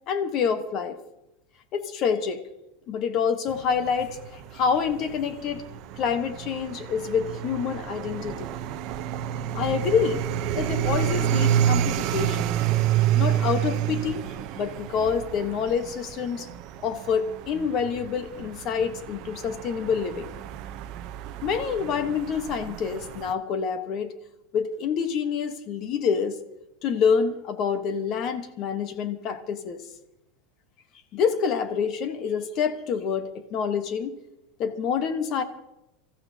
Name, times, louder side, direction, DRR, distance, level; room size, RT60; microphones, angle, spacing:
voice 1, 0.1-1.0 1.7-2.4 2.9-5.6 6.0-8.6 9.5-10.2 10.5-12.5 13.1-14.2 14.6-16.5 16.8-20.3 21.4-24.1 24.5-26.4 26.8-29.8 31.1-34.1 34.6-35.4, left 6 dB, 30° left, 9 dB, 1.1 m, -27 dB
sound 1, 3.5-23.3, right 11 dB, 40° right, 0.7 m, -29 dB
26.0 x 14.5 x 2.8 m, 0.91 s
supercardioid pair, 180°, 0 cm